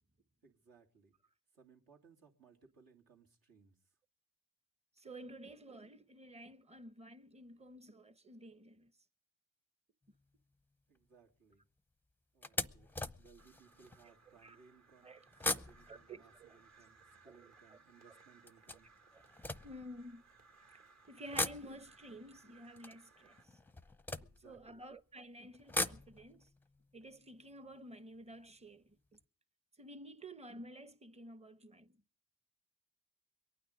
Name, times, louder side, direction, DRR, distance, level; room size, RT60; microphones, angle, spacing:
voice 1, 0.4-1.1 1.5-3.8 10.9-11.6 12.3-12.9 13.2-19.3 24.2-24.8, right 5 dB, 70° right, 2.7 m, -64 dB
voice 2, 5.0-8.9 14.4-14.6 15.0-15.2 15.9-16.6 17.3-17.4 17.7-17.8 18.1-18.2 19.1-19.2 19.6-20.2 21.1-23.6 24.4-26.5 26.9-29.2 29.8-32.0, right 1 dB, 15° right, 0.9 m, -52 dB
sound 1, 10.1-10.4 11.0-11.1 11.5-11.6 12.4-14.1 15.3-17.6 18.5-20.4 21.2-25.0 25.4-28.5 28.8-28.9 29.1-29.2, left 2 dB, 5° left, 0.7 m, -42 dB
Crow, 13.4-23.5, right 4 dB, 45° right, 1.8 m, -65 dB
23.0 x 9.2 x 5.3 m
supercardioid pair, 55°, 36 cm